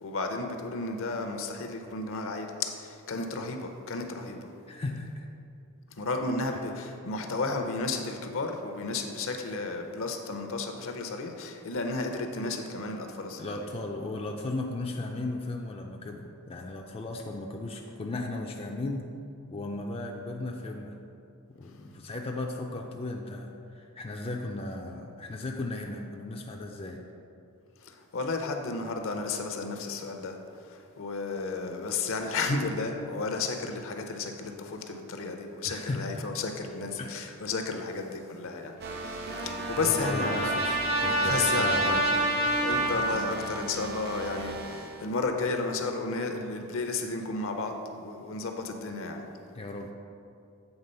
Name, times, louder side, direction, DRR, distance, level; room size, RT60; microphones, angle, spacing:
voice 1, 0.0-4.5 6.0-13.6 27.8-30.4 30.6-40.5 41.2-42.0 42.6-49.2, left 3 dB, 60° left, 5 dB, 0.7 m, -33 dB
voice 2, 4.7-5.3 6.5-6.6 13.4-19.1 19.5-21.0 21.5-27.0 35.7-36.3 37.0-37.2 39.7-42.0 49.5-49.9, left 2 dB, 25° left, 1 dB, 0.4 m, -36 dB
sound 1, 38.8-45.1, right 3 dB, 45° right, 0.5 m, -38 dB
Trumpet, 38.8-43.7, right 1 dB, 90° right, 1.2 m, -28 dB
8.0 x 3.7 x 5.4 m, 2.6 s
head